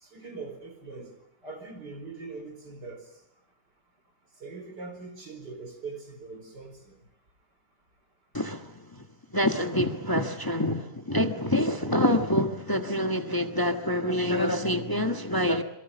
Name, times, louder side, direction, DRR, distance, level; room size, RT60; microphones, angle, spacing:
voice 1, 0.1-1.1 1.4-3.0 4.4-7.0, right 4 dB, 80° right, 5.1 m, -41 dB
voice 2, 8.3-9.0 9.3-15.6, left 1 dB, 15° left, 1.4 m, -26 dB
26.5 x 23.5 x 7.0 m
omnidirectional pair, 1.8 m